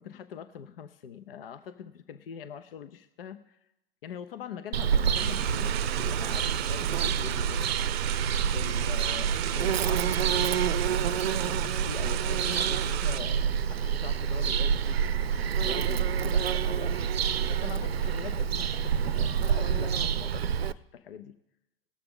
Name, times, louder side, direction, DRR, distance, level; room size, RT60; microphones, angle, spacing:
voice 1, 0.0-3.6 4.0-7.7 8.5-10.5 11.3-17.0 17.5-21.4, left 8 dB, 70° left, 10 dB, 0.7 m, -43 dB
Bird vocalization bird call bird song, 4.7-20.7, right 7 dB, 85° right, 0.5 m, -27 dB
sound 1, 5.1-13.2, right 12 dB, 35° right, 0.6 m, -36 dB
19.5 x 6.7 x 3.7 m, 0.86 s
figure-of-eight pair, 100°, 30 cm